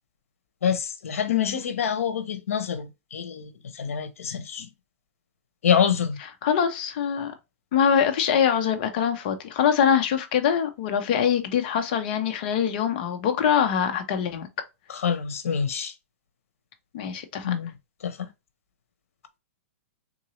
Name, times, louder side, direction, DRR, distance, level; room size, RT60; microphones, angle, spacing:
voice 1, 0.6-4.7 5.6-6.2 14.9-15.9 17.4-17.7 18.0-18.3, left 7 dB, 80° left, 0.9 m, -26 dB
voice 2, 6.4-7.3 7.7-14.5 16.9-17.5, left 8 dB, 40° left, 0.7 m, -23 dB
3.7 x 2.7 x 3.0 m
hypercardioid pair, 165°, 7 cm